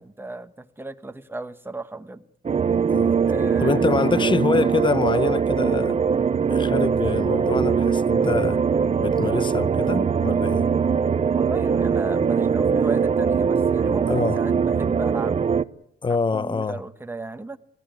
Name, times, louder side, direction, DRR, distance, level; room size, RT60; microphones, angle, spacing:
voice 1, 0.0-2.2 3.3-3.9 11.3-15.3 16.1-17.6, right 2 dB, 10° right, 1.3 m, -35 dB
sound 1, 2.4-15.6, right 6 dB, 30° right, 0.8 m, -21 dB
voice 2, 3.6-6.0 6.5-8.6 9.0-10.7 14.1-14.4 16.0-16.8, left 4 dB, 25° left, 0.9 m, -25 dB
21.0 x 16.5 x 9.2 m
cardioid pair, 90°, 20 cm